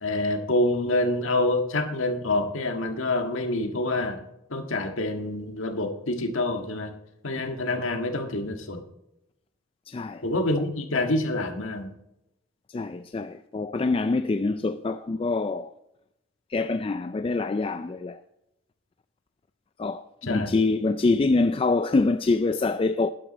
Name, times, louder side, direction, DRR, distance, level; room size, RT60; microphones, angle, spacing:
voice 1, 0.0-4.2 4.5-6.9 7.2-8.8 10.2-11.9 20.3-20.5, left 2 dB, 75° left, 1.7 m, -27 dB
voice 2, 9.9-10.2 10.6-10.7 12.7-15.7 16.5-18.2 19.8-23.1, left 3 dB, 25° left, 0.3 m, -25 dB
12.0 x 11.0 x 4.1 m
head